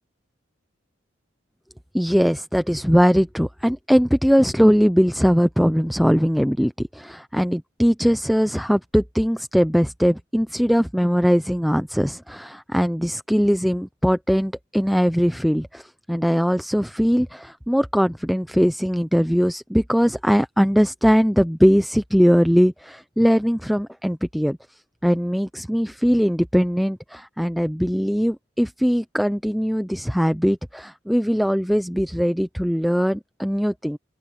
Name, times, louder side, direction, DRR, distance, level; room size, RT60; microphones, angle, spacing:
voice 1, 1.9-24.6 25.0-34.0, equal, ahead, 0.5 m, -20 dB
open air
head